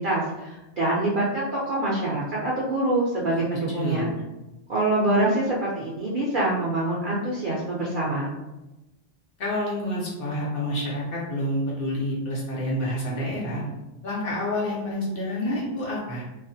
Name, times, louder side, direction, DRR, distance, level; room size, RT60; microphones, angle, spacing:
voice 1, 0.0-4.1 4.7-8.3, right 2 dB, 60° right, -6 dB, 0.5 m, -25 dB
voice 2, 3.5-4.1 9.4-13.6 14.0-16.2, left 1 dB, 60° left, -4 dB, 0.8 m, -28 dB
2.3 x 2.1 x 2.6 m, 1.0 s
omnidirectional pair, 1.3 m